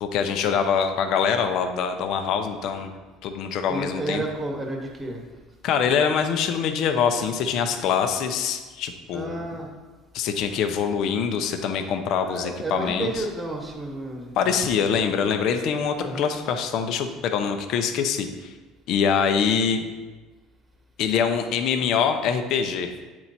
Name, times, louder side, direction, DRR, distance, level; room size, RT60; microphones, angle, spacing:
voice 1, 0.0-2.9 3.2-4.2 5.6-9.4 10.1-13.1 14.4-18.5 18.9-19.8 21.0-22.9, left 7 dB, 55° left, 7 dB, 0.6 m, -24 dB
voice 2, 3.7-5.2 9.1-9.7 12.2-14.6 16.0-16.3, right 2 dB, 10° right, 1 dB, 1.2 m, -31 dB
8.6 x 4.5 x 4.1 m, 1.3 s
cardioid pair, 140°, 0 cm